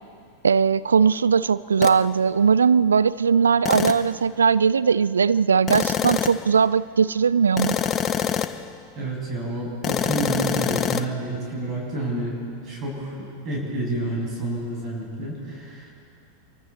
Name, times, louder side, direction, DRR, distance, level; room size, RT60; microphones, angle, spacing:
voice 1, 0.4-7.8, right 6 dB, 70° right, 18 dB, 0.4 m, -19 dB
sound 1, 1.8-2.0 3.7-4.1 5.7-6.5 7.6-8.7 9.8-11.1, left 8 dB, 25° left, 0.8 m, -25 dB
voice 2, 8.9-12.3 12.6-15.9, right 1 dB, 30° right, -3 dB, 6.8 m, -29 dB
27.5 x 24.0 x 4.2 m, 2.5 s
figure-of-eight pair, 90°, 0 cm